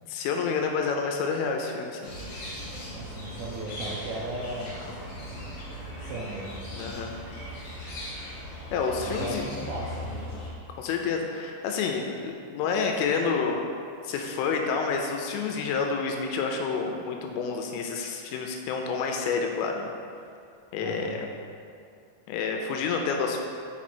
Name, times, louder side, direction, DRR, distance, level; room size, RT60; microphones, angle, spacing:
voice 1, 0.1-2.1 6.7-7.1 8.7-9.4 10.8-13.6 14.0-19.9 20.7-21.2 22.3-23.4, left 5 dB, 85° left, 2 dB, 3.0 m, -29 dB
sound 1, 2.0-10.5, left 1 dB, 65° left, 1.9 m, -38 dB
voice 2, 2.9-4.8 5.1-5.5 5.8-6.8 9.0-10.3 20.8-21.2, right 2 dB, 90° right, -5 dB, 2.5 m, -37 dB
6.1 x 6.1 x 4.3 m, 2.4 s
omnidirectional pair, 5.9 m